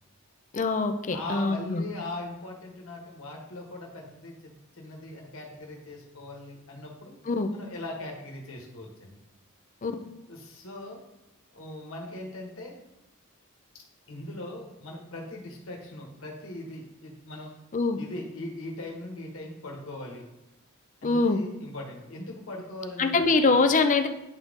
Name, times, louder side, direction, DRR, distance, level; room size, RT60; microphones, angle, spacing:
voice 1, 0.5-1.8 7.3-7.5 9.8-9.9 17.7-18.0 21.0-21.4 23.0-24.1, left 3 dB, 35° left, 8 dB, 0.5 m, -23 dB
voice 2, 1.1-7.2 7.5-9.2 10.3-11.0 11.5-12.7 13.7-17.5 17.9-20.2 21.0-23.6, left 2 dB, 65° left, -1 dB, 1.4 m, -40 dB
10.5 x 3.9 x 3.6 m, 0.92 s
head